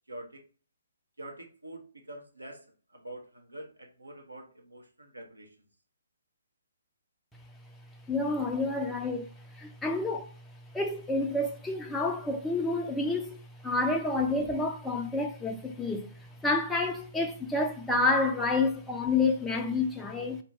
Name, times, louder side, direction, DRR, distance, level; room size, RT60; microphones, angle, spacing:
voice 1, 0.1-0.4 1.2-5.6, right 1 dB, 80° right, 1.0 m, -46 dB
voice 2, 8.1-9.3 9.6-10.3 10.7-13.4 13.6-16.1 16.4-20.4, left 3 dB, 5° left, 0.4 m, -29 dB
4.2 x 2.6 x 3.1 m
figure-of-eight pair, 130°, 0 cm